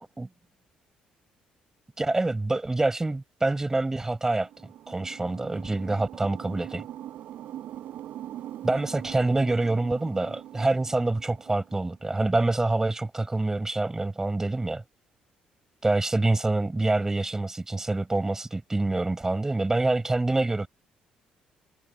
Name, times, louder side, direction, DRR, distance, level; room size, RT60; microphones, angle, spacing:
voice 1, 2.0-4.5 4.9-6.8 8.6-14.8 15.8-20.7, right 2 dB, 15° right, 5.9 m, -26 dB
sound 1, 4.3-11.9, right 12 dB, 70° right, 7.0 m, -42 dB
supercardioid pair, 75°, 3 cm